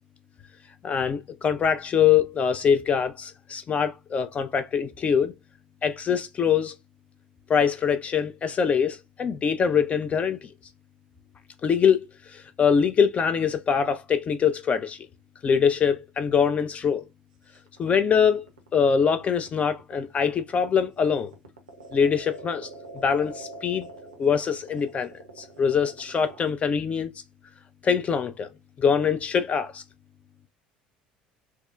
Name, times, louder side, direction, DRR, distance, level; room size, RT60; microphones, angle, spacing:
voice 1, 0.8-5.3 5.8-6.7 7.5-10.4 11.6-12.0 12.3-15.1 15.4-17.0 17.8-18.5 18.7-21.3 21.9-22.7 22.9-23.9 24.2-27.1 27.8-28.5 28.8-29.8, left 7 dB, 30° left, 0.3 m, -23 dB
sound 1, 17.5-26.5, right 2 dB, 75° right, 0.6 m, -44 dB
3.4 x 2.0 x 2.4 m
figure-of-eight pair, 60°, 4 cm